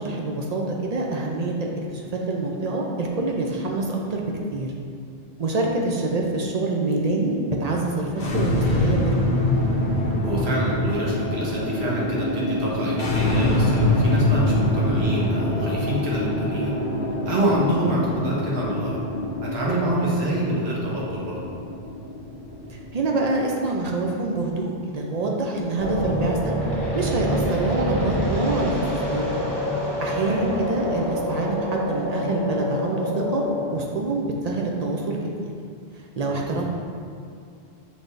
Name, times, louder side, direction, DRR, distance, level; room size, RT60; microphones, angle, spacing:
voice 1, 0.0-4.7 5.4-9.2 22.7-26.5 26.9-29.4 30.0-33.4 33.7-35.2 36.2-36.6, right 2 dB, 50° right, -1 dB, 0.5 m, -26 dB
sound 1, 8.1-23.4, left 1 dB, 55° left, 0.8 m, -25 dB
voice 2, 10.2-16.8 17.2-19.0 19.4-21.5 30.2-30.5 36.3-36.6, right 1 dB, 75° right, -5 dB, 1.2 m, -26 dB
sound 2, 25.8-33.6, equal, 30° right, 1.0 m, -27 dB
6.0 x 3.5 x 2.6 m, 2.4 s
omnidirectional pair, 1.1 m